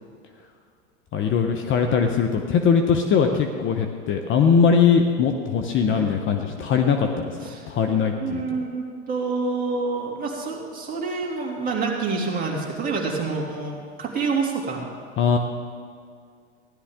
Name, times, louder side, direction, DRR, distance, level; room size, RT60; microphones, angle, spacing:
voice 1, 1.1-7.4 7.7-8.4 15.2-15.4, left 6 dB, 35° left, 5 dB, 0.9 m, -20 dB
voice 2, 8.2-14.9, right 4 dB, 25° right, -2 dB, 2.8 m, -27 dB
16.0 x 11.5 x 3.7 m, 2.1 s
hypercardioid pair, 105°, 37 cm